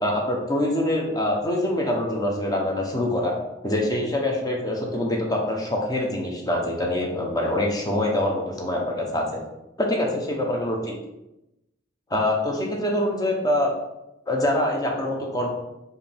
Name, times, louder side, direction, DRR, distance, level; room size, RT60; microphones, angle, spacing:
voice 1, 0.0-3.3 3.6-9.4 9.8-10.8 12.1-13.7 14.3-15.5, left 1 dB, 20° left, 0 dB, 0.8 m, -24 dB
4.6 x 2.7 x 3.4 m, 0.92 s
head